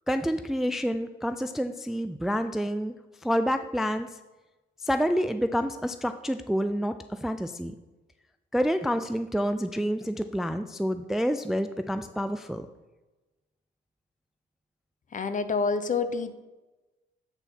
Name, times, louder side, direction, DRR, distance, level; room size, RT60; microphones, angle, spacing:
voice 1, 0.1-2.9 3.2-4.1 4.8-7.7 8.5-12.7, equal, ahead, 9 dB, 0.3 m, -28 dB
voice 2, 15.1-16.3, left 4 dB, 40° left, 11 dB, 0.7 m, -27 dB
8.3 x 4.1 x 5.5 m, 1.1 s
cardioid pair, 90°, 20 cm